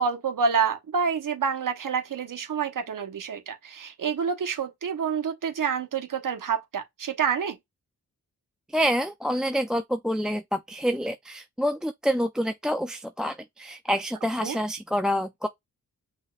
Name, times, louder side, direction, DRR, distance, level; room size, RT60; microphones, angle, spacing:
voice 1, 0.0-7.6 14.4-14.6, right 6 dB, 65° right, 1.1 m, -28 dB
voice 2, 8.7-15.5, equal, ahead, 0.4 m, -27 dB
5.6 x 3.1 x 2.4 m
cardioid pair, 65°, 35 cm